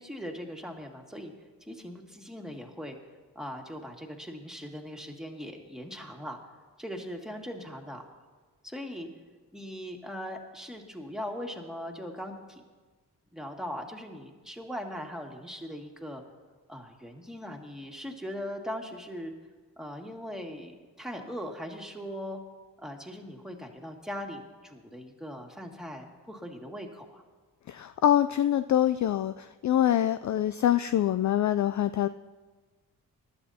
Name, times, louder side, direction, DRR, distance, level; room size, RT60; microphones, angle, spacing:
voice 1, 0.0-1.3 1.7-3.0 3.4-6.4 6.8-8.0 8.6-9.1 9.5-12.6 13.3-16.2 16.7-19.3 19.8-22.4 22.8-27.2, equal, ahead, 1 dB, 2.2 m, -40 dB
voice 2, 27.7-32.1, left 11 dB, 45° left, 12 dB, 0.4 m, -25 dB
20.5 x 12.0 x 2.9 m, 1.3 s
hypercardioid pair, 40°, 43 cm